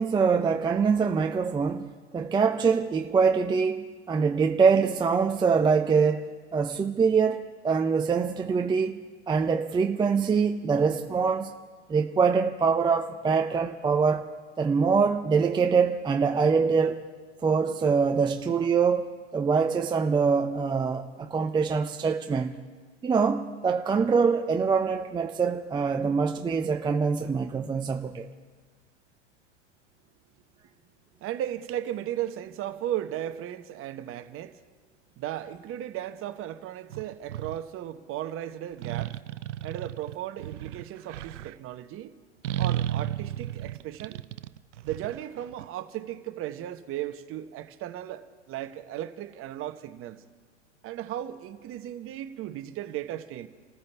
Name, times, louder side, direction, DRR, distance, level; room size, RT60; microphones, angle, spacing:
voice 1, 0.0-9.0 9.3-11.5 11.9-14.3 14.6-17.0 17.4-22.6 23.0-28.3, right 5 dB, 15° right, 0.6 m, -24 dB
voice 2, 31.2-34.6 35.2-39.2 39.6-42.2 42.6-44.2 44.8-50.2 50.8-53.5, right 12 dB, 35° right, 1.1 m, -36 dB
sound 1, 36.9-37.6 38.8-41.5 42.4-45.7, right 12 dB, 80° right, 0.6 m, -33 dB
28.0 x 14.5 x 3.4 m
hypercardioid pair, 100°, 36 cm